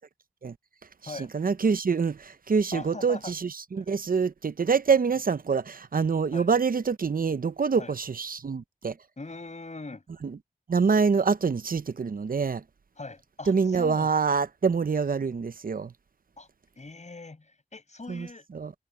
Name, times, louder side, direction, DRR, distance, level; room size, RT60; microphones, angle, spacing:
voice 1, 1.3-8.9 10.2-10.3 10.7-12.6 13.5-15.9 18.1-18.3 18.5-18.7, right 5 dB, 70° right, 0.7 m, -25 dB
voice 2, 2.7-3.3 3.8-3.9 6.3-6.5 7.8-7.9 9.2-10.0 13.0-14.1 16.4-16.5 16.8-18.5, left 3 dB, 50° left, 5.9 m, -41 dB
wide cardioid pair, 80°, 15 cm